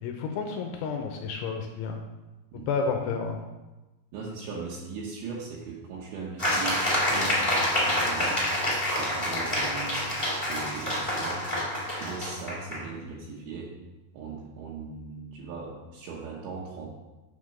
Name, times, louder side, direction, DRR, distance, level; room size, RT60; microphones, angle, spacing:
voice 1, 0.0-2.0 2.7-3.4, left 5 dB, 80° left, 3 dB, 2.9 m, -30 dB
voice 2, 4.1-8.5 8.8-10.2 10.5-11.5 11.9-13.8 14.1-16.9, right 4 dB, 75° right, -4 dB, 2.9 m, -39 dB
sound 1, 6.4-12.8, left 1 dB, 15° left, 1.0 m, -27 dB
9.3 x 3.7 x 6.5 m, 1.1 s
omnidirectional pair, 5.9 m